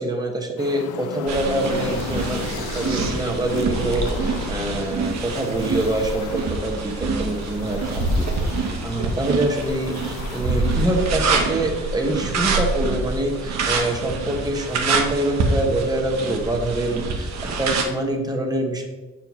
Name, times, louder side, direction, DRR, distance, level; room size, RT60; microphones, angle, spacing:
voice 1, 0.0-6.9 7.2-17.3 17.6-18.8, right 1 dB, 15° right, 1 dB, 1.2 m, -25 dB
sound 1, 0.6-15.4 16.5-18.2, left 9 dB, 90° left, 0.5 m, -36 dB
sound 2, 1.3-17.8, right 3 dB, 65° right, 1.1 m, -26 dB
6.7 x 5.8 x 3.1 m, 1.2 s
cardioid pair, 90°, 30 cm